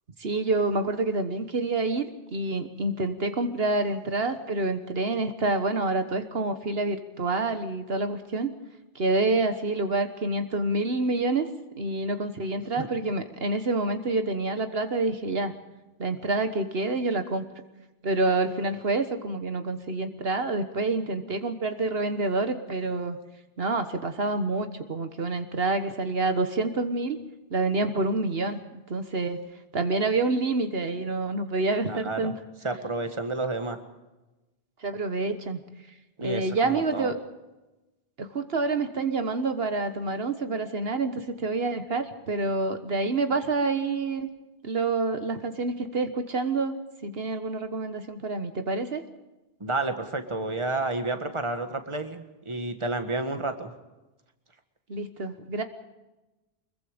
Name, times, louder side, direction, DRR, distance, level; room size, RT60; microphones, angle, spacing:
voice 1, 0.2-8.5 8.9-11.5 11.8-15.5 16.0-17.4 18.0-23.2 23.6-27.2 27.5-29.4 29.7-32.3 34.8-35.6 36.2-37.2 38.2-44.3 44.6-46.8 47.0-49.0 54.9-55.6, right 3 dB, 70° right, 9 dB, 1.5 m, -27 dB
voice 2, 31.9-32.3 32.6-33.8 36.2-37.1 49.6-53.7, right 2 dB, 30° right, 7 dB, 1.8 m, -30 dB
24.5 x 22.5 x 5.1 m, 1.1 s
omnidirectional pair, 1.0 m